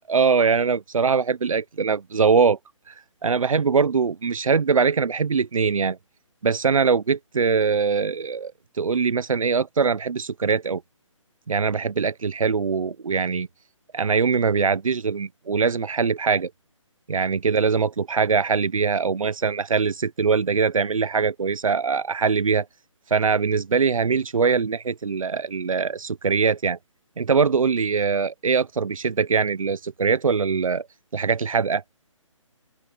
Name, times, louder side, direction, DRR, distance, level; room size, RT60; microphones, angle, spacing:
voice 1, 0.1-2.6 2.9-3.0 3.2-6.0 6.4-8.5 8.8-10.8 11.5-13.5 13.9-16.5 17.1-22.7 23.1-26.8 27.2-30.9 31.1-31.8, right 5 dB, 90° right, 0.9 m, -22 dB
open air
hypercardioid pair, 170°, 17 cm